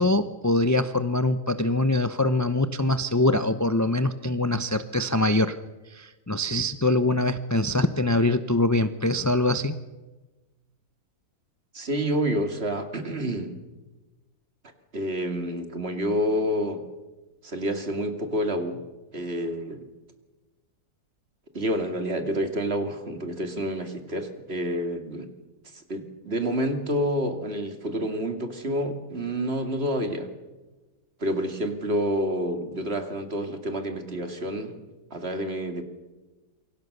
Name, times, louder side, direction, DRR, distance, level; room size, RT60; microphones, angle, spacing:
voice 1, 0.0-5.6 5.9-9.7, left 2 dB, 20° left, 11 dB, 0.4 m, -23 dB
voice 2, 11.7-13.6 14.9-16.8 17.4-18.8 19.1-19.9 21.5-25.3 25.9-30.3 31.2-34.8 35.1-35.8, equal, 40° right, 6 dB, 2.6 m, -28 dB
27.5 x 24.0 x 6.7 m, 1.2 s
omnidirectional pair, 1.7 m